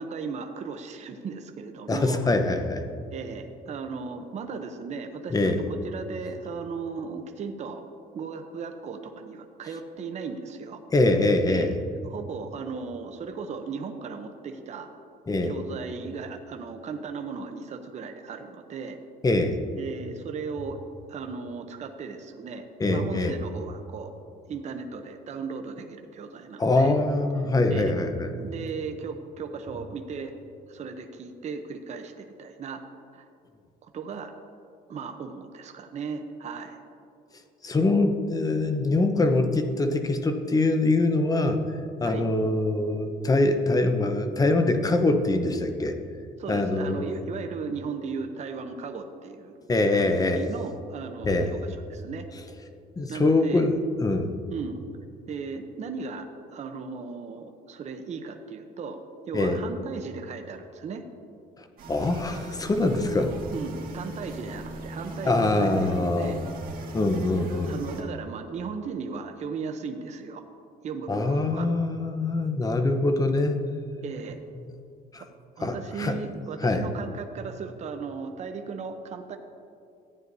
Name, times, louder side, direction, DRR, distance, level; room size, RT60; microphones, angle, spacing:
voice 1, 0.0-2.3 3.1-7.8 8.1-10.8 11.5-11.7 12.0-14.9 15.4-19.0 19.8-20.8 21.1-24.1 24.5-27.0 27.7-27.9 28.3-30.3 30.7-32.8 33.1-33.3 33.8-34.3 34.9-36.8 42.0-42.3 46.4-49.5 49.9-52.3 53.1-53.7 54.5-54.8 55.3-61.0 63.5-66.4 66.9-67.0 67.5-70.4 70.8-71.7 74.0-74.4 75.6-79.4, right 5 dB, 40° right, 5 dB, 0.7 m, -36 dB
voice 2, 1.9-2.8 5.3-5.6 10.9-11.7 15.3-15.5 19.2-19.6 22.8-23.3 26.6-28.3 37.6-41.6 42.0-45.9 46.5-47.0 49.7-50.4 51.2-51.5 53.0-53.7 54.0-54.3 59.3-59.6 61.9-63.4 65.2-66.3 66.9-67.8 71.1-73.6 75.1-75.2 75.6-76.1 76.6-76.8, left 2 dB, 20° left, 7 dB, 0.8 m, -23 dB
sound 1, 61.8-68.0, right 1 dB, 60° right, 1.9 m, -39 dB
14.5 x 9.5 x 2.7 m, 2.6 s
cardioid pair, 110°, 17 cm